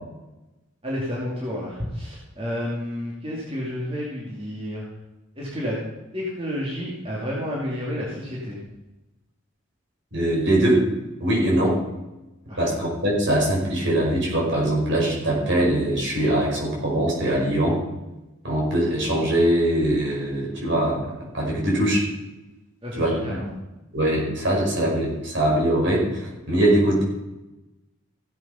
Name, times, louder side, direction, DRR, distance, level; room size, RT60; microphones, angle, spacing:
voice 1, 0.8-4.9 5.4-5.8 6.1-8.6 12.5-12.6 22.8-23.5, equal, 25° right, -5 dB, 2.4 m, -30 dB
voice 2, 10.1-10.8 11.2-11.8 12.6-17.8 18.4-21.0 21.3-22.1 23.0-23.4 23.9-27.0, right 1 dB, 55° right, -3 dB, 5.3 m, -22 dB
15.5 x 8.1 x 5.6 m, 1.0 s
head